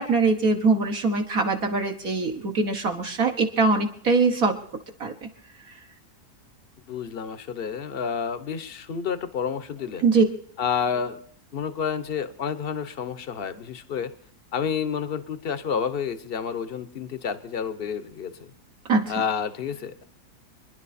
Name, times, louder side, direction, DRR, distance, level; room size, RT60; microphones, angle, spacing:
voice 1, 0.0-4.6 5.0-5.3 10.0-10.2 18.9-19.2, right 4 dB, 60° right, 2 dB, 1.9 m, -22 dB
voice 2, 6.9-10.1 10.6-11.2 11.5-14.1 14.5-18.5 19.1-20.0, left 7 dB, 40° left, 13 dB, 1.1 m, -29 dB
27.5 x 11.0 x 4.3 m, 0.65 s
omnidirectional pair, 1.7 m